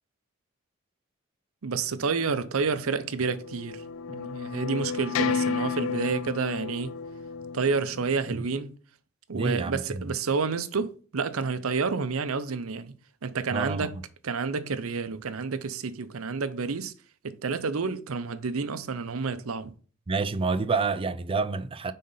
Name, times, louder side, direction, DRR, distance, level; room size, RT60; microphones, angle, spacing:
voice 1, 1.6-6.9 7.5-8.7 9.3-12.9 13.2-14.0 14.2-16.9 17.2-19.7, right 5 dB, 75° right, 0.6 m, -29 dB
sound 1, 2.9-8.6, left 5 dB, 70° left, 0.4 m, -32 dB
voice 2, 9.3-10.0 13.5-13.9 20.1-21.9, right 4 dB, 25° right, 0.4 m, -28 dB
5.5 x 3.8 x 5.5 m
head